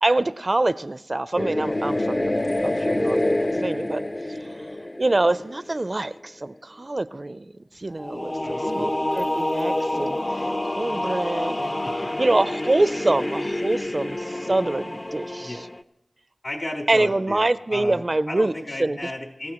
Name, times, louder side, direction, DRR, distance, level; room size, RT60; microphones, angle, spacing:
voice 1, 0.0-2.3 2.6-4.0 4.3-4.4 5.0-11.8 12.2-15.7 16.9-18.5 18.8-19.0, right 2 dB, 40° right, 14 dB, 0.4 m, -25 dB
sound 1, 1.4-5.9 8.0-15.8, left 1 dB, 30° left, 0.5 m, -27 dB
voice 2, 8.4-8.9 11.8-12.1 15.4-15.7 16.4-19.5, left 1 dB, 60° left, -2 dB, 3.3 m, -34 dB
25.0 x 15.0 x 3.0 m, 0.90 s
wide cardioid pair, 55°, 0 cm